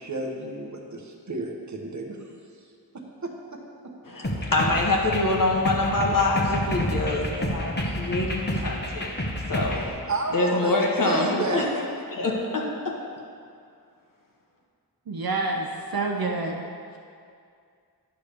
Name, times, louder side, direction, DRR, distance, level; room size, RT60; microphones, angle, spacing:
voice 1, 0.0-2.2 10.1-10.7 11.0-11.8, right 2 dB, 45° right, 0 dB, 1.0 m, -30 dB
voice 2, 4.0-9.1 9.5-9.8 10.3-11.6 12.1-12.7, left 2 dB, 55° left, -1 dB, 1.1 m, -25 dB
sound 1, 4.2-9.9, left 1 dB, 25° left, 1.0 m, -29 dB
voice 3, 15.1-16.7, right 3 dB, 65° right, 1 dB, 0.7 m, -28 dB
9.9 x 3.5 x 6.8 m, 2.3 s
wide cardioid pair, 80°, 39 cm